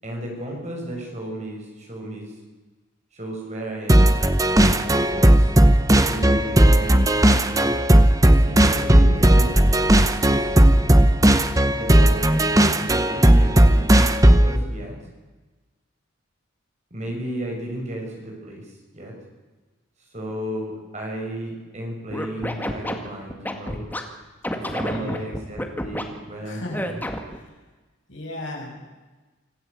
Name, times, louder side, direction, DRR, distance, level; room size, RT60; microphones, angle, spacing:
voice 1, 0.0-2.4 3.1-4.2 4.5-5.5 6.0-7.8 8.2-10.8 11.7-15.0 16.9-19.1 20.1-23.9 24.5-27.0, right 1 dB, 35° right, 0 dB, 6.6 m, -34 dB
sound 1, 3.9-14.6, right 1 dB, 15° right, 1.0 m, -16 dB
Scratching (performance technique), 22.1-24.0 24.4-26.0 26.7-27.4, left 1 dB, 10° left, 2.0 m, -29 dB
voice 2, 24.7-25.2 26.4-26.9 27.3-27.6 28.1-28.8, left 1 dB, 65° left, -1 dB, 6.8 m, -36 dB
25.5 x 15.5 x 8.4 m, 1.2 s
head